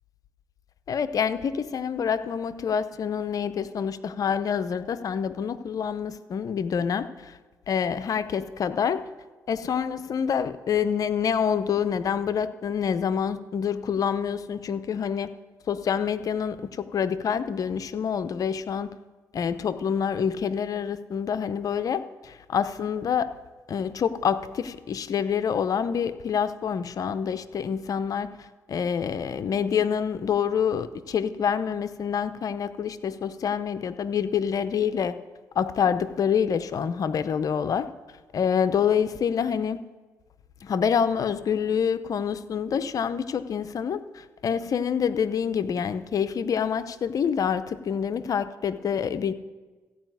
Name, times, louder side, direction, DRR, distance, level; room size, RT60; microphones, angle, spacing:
voice 1, 0.9-7.1 7.7-9.0 9.5-15.3 15.7-18.9 19.3-23.3 23.7-28.3 28.7-35.1 35.6-37.9 38.3-39.8 40.6-49.3, left 7 dB, 60° left, 12 dB, 0.7 m, -27 dB
14.5 x 4.9 x 9.2 m, 1.3 s
supercardioid pair, 65°, 7 cm